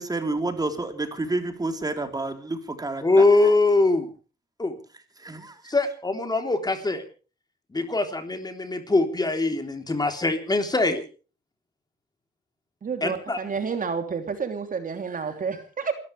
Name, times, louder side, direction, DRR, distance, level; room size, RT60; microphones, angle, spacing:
voice 1, 0.0-3.2 5.2-5.7, right 2 dB, 20° right, 6 dB, 4.0 m, -29 dB
voice 2, 3.0-4.1 4.6-4.8 5.7-7.0 7.7-11.0 13.0-13.4, left 2 dB, 20° left, 6 dB, 3.5 m, -22 dB
voice 3, 12.8-15.9, right 5 dB, 45° right, 7 dB, 3.1 m, -30 dB
29.0 x 14.0 x 3.4 m, 0.36 s
cardioid pair, 90°, 20 cm